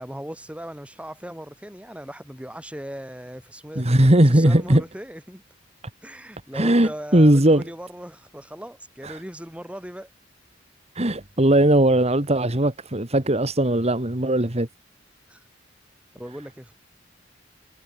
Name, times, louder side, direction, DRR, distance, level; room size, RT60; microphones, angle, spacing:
voice 1, 0.0-5.4 6.0-10.1 15.3-15.4 16.2-16.7, equal, 5° right, 6.8 m, -38 dB
voice 2, 3.8-4.8 6.5-7.6 9.0-9.2 10.9-14.7, right 1 dB, 35° right, 2.2 m, -18 dB
head